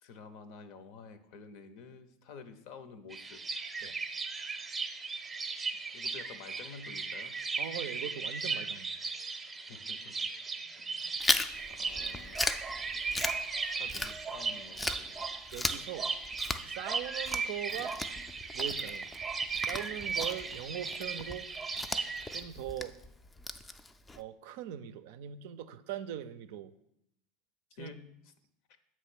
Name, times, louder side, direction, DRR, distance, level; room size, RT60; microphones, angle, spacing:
voice 1, 0.0-3.4 5.9-7.4 9.6-10.3 11.0-11.1 11.6-12.6 13.0-15.0 27.8-28.3 28.7-28.8, left 5 dB, 65° left, 11 dB, 0.7 m, -50 dB
sound 1, 3.1-22.4, right 4 dB, 20° right, 0.7 m, -37 dB
voice 2, 7.6-9.0 15.5-16.1 16.7-18.0 18.5-19.1 19.6-21.5 22.3-22.9 24.1-26.7 27.8-27.9, right 11 dB, 70° right, 11 dB, 0.4 m, -40 dB
Chewing mastication, 11.2-14.5 14.8-24.2, left 2 dB, 15° left, 0.4 m, -37 dB
7.5 x 3.1 x 6.1 m, 0.78 s
hypercardioid pair, 90°, 0 cm